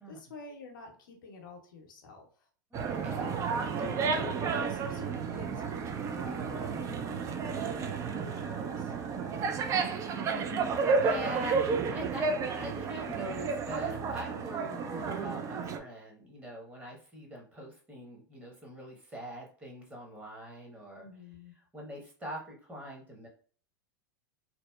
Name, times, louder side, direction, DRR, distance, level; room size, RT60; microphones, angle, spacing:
voice 1, 0.1-2.5 3.8-8.9 21.0-21.5, left 3 dB, 75° left, 2 dB, 0.6 m, -48 dB
voice 2, 2.7-3.4 10.1-21.1 21.7-23.3, equal, 15° right, -2 dB, 0.9 m, -43 dB
sound 1, 2.7-15.8, right 5 dB, 30° right, 0.4 m, -32 dB
2.7 x 2.0 x 2.2 m, 0.44 s
hypercardioid pair, 95°, 11 cm